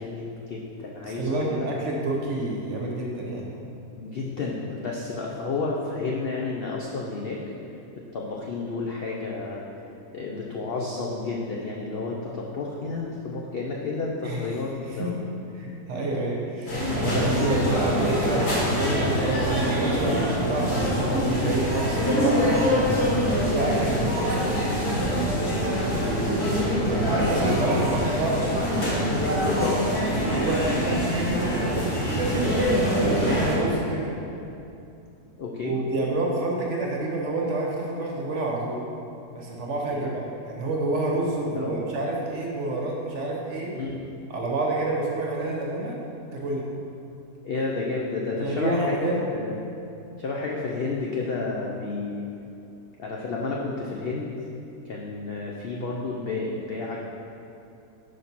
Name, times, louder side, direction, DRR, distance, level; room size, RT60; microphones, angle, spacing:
voice 1, 0.0-1.7 4.0-7.4 7.9-9.6 10.1-15.1 17.0-17.5 19.0-19.2 21.3-21.6 23.3-23.6 25.7-26.5 29.6-29.8 35.4-35.8 39.9-40.1 41.5-41.9 43.7-44.0 47.4-49.0 49.3-49.6 50.2-52.2 53.0-54.3 54.8-57.0, left 3 dB, 85° left, -2 dB, 0.5 m, -31 dB
voice 2, 1.0-3.5 14.2-14.5 14.9-15.2 15.6-22.6 23.3-24.5 26.8-28.5 30.3-32.7 33.0-34.1 35.6-38.8 39.3-43.7 44.3-45.9 46.3-46.6 48.4-49.2, right 2 dB, 55° right, -2 dB, 1.1 m, -28 dB
sound 1, 16.7-33.6, equal, 45° left, 1.5 m, -24 dB
5.1 x 4.1 x 5.9 m, 2.7 s
omnidirectional pair, 1.7 m